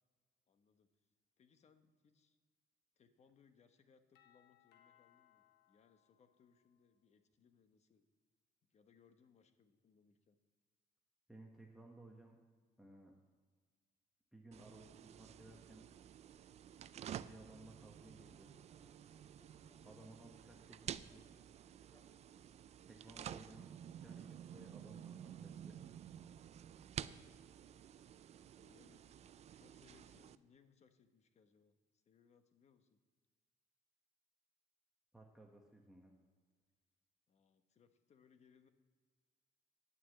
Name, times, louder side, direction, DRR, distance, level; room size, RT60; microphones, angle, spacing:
voice 1, 0.5-0.9 1.4-2.4 2.9-8.1 8.7-10.4 19.7-20.0 28.5-29.1 29.5-33.0 37.3-38.7, left 6 dB, 40° left, 9 dB, 1.0 m, -70 dB
Doorbell, 4.1-7.0, left 11 dB, 85° left, 1.0 m, -72 dB
voice 2, 11.3-12.4 12.8-13.2 14.3-16.0 17.2-18.7 19.8-21.3 22.8-23.7 24.0-25.8 35.1-36.1, right 2 dB, ahead, 0 dB, 1.1 m, -59 dB
sound 1, 14.5-30.3, right 9 dB, 40° right, 0.4 m, -51 dB
sound 2, 16.9-23.4, left 2 dB, 20° left, 1.7 m, -77 dB
9.5 x 6.1 x 8.2 m, 1.5 s
cardioid pair, 110°, 17 cm